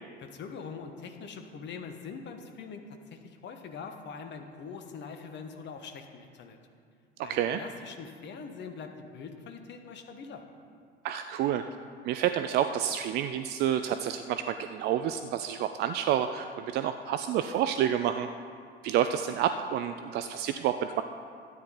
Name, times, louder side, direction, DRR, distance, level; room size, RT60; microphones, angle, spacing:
voice 1, 0.2-6.6 7.2-10.4, left 5 dB, 35° left, 6 dB, 1.2 m, -43 dB
voice 2, 7.2-7.6 11.0-11.6 12.0-18.3 18.8-21.0, right 10 dB, 35° right, 9 dB, 0.4 m, -29 dB
13.0 x 9.5 x 4.0 m, 2.2 s
figure-of-eight pair, 75°, 32 cm